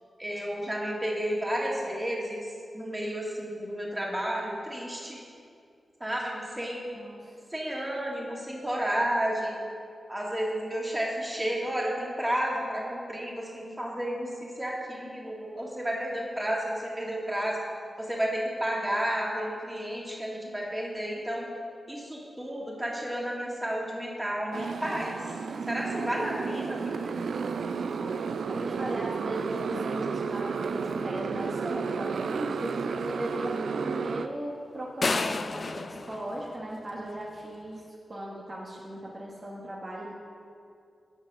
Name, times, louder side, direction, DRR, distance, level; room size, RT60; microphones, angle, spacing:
voice 1, 0.2-5.2 6.0-6.9 7.5-9.6 10.1-17.6 18.0-21.5 21.9-25.1 25.7-27.1, equal, 15° right, -3 dB, 1.9 m, -32 dB
voice 2, 6.9-7.4 28.0-28.2 28.5-37.8 38.1-40.1, right 1 dB, 40° right, -5 dB, 1.1 m, -37 dB
Motorcycle, 24.5-34.3, right 5 dB, 90° right, 0.3 m, -32 dB
sound 1, 35.0-37.2, left 3 dB, 50° left, 0.3 m, -31 dB
7.8 x 6.5 x 6.3 m, 2.4 s
wide cardioid pair, 85°, 0 cm